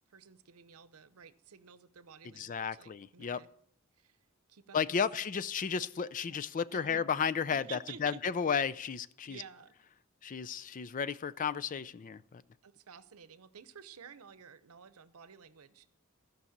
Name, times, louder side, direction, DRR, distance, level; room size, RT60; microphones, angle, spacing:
voice 1, 0.1-3.5 4.0-4.2 4.5-5.2 6.3-6.4 6.7-7.0 7.5-8.2 9.2-9.7 12.6-15.9, right 7 dB, 85° right, 14 dB, 0.8 m, -52 dB
voice 2, 2.4-3.4 4.7-9.4 10.2-12.4, left 6 dB, 40° left, 17 dB, 0.4 m, -33 dB
15.0 x 5.5 x 7.2 m, 0.66 s
head